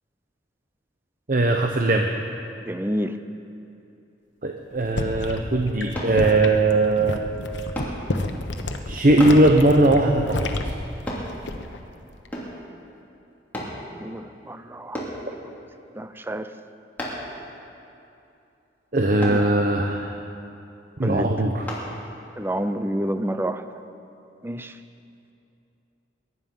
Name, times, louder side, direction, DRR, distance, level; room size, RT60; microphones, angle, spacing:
voice 1, 1.3-2.1 4.4-7.2 8.9-10.7 18.9-20.1 21.0-21.7, right 2 dB, 45° right, 3 dB, 0.8 m, -19 dB
voice 2, 2.7-3.1 14.0-15.0 16.0-16.5 19.3-19.4 21.0-21.3 22.4-23.6 24.4-24.7, equal, 10° right, 10 dB, 0.5 m, -28 dB
sound 1, 4.7-11.8 12.1-12.5, left 2 dB, 85° left, 1.0 m, -30 dB
sound 2, 6.0-6.2 7.8-8.0 9.2-9.4 11.1-11.3 12.3-12.6 13.5-13.8 14.9-15.2 17.0-17.3 19.2-19.4 21.7-21.9 22.4-22.6, equal, 10° left, 2.9 m, -31 dB
22.0 x 11.0 x 5.4 m, 2.8 s
head